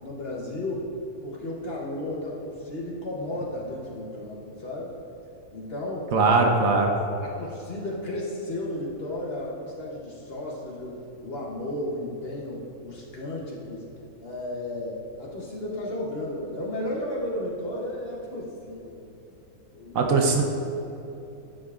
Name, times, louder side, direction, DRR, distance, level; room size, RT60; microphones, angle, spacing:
voice 1, 0.0-0.8 1.2-4.9 5.5-6.3 7.2-13.8 14.2-19.0 19.7-20.1, left 1 dB, 50° left, -3 dB, 0.9 m, -34 dB
voice 2, 6.1-6.9 19.9-20.4, right 3 dB, 70° right, 2 dB, 1.0 m, -20 dB
9.8 x 6.3 x 2.4 m, 2.8 s
omnidirectional pair, 1.6 m